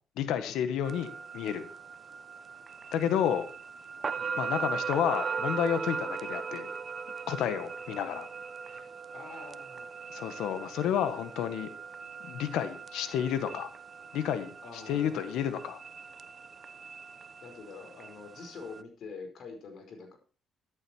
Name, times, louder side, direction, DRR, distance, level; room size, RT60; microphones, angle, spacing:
voice 1, 0.2-1.7 2.9-3.5 4.3-6.7 7.3-8.3 10.1-11.7 12.3-13.7 14.1-15.8, left 9 dB, 90° left, 11 dB, 1.6 m, -31 dB
sound 1, 0.8-18.8, right 5 dB, 40° right, 0.7 m, -39 dB
voice 2, 9.1-10.0 14.6-15.6 17.4-20.2, left 4 dB, 65° left, 4 dB, 5.1 m, -46 dB
14.0 x 10.5 x 4.6 m, 0.38 s
cardioid pair, 90°, 0 cm